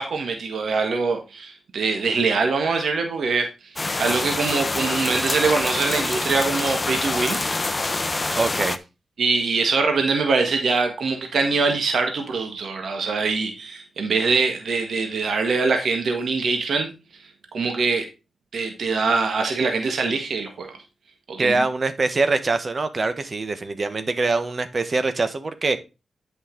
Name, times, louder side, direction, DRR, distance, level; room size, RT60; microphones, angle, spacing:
voice 1, 0.0-3.5 4.0-7.4 9.2-16.9 17.5-18.0 18.5-20.8 21.3-21.6, right 4 dB, 75° right, 1.6 m, -23 dB
sound 1, 3.8-8.8, left 3 dB, 35° left, 0.8 m, -26 dB
voice 2, 8.4-8.8 21.4-25.8, right 3 dB, 50° right, 1.3 m, -23 dB
8.6 x 5.6 x 3.8 m
supercardioid pair, 45°, 0 cm